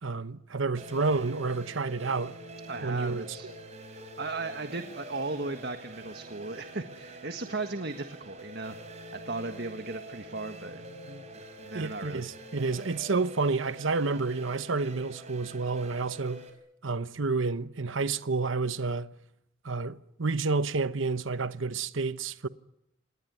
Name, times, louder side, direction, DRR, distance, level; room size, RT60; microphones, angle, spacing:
voice 1, 0.0-2.4 2.8-3.5 11.7-16.5 16.8-19.1 19.6-22.5, right 4 dB, 70° right, 0.9 m, -30 dB
sound 1, 0.8-16.5, right 1 dB, 30° right, 5.1 m, -46 dB
voice 2, 2.7-3.5 3.9-11.2 11.6-12.3, right 3 dB, 50° right, 1.6 m, -37 dB
28.0 x 20.0 x 9.5 m
head